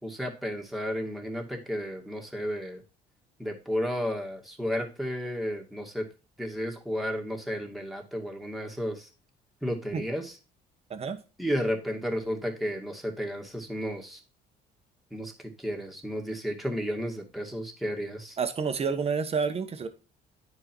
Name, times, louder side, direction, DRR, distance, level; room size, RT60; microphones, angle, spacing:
voice 1, 0.0-2.8 3.4-6.1 6.4-9.1 9.6-10.3 11.4-14.2 15.1-18.4, equal, ahead, 2.2 m, -32 dB
voice 2, 10.9-11.2 18.4-19.9, right 5 dB, 35° right, 1.3 m, -29 dB
10.0 x 4.8 x 4.6 m
cardioid pair, 110°, 17 cm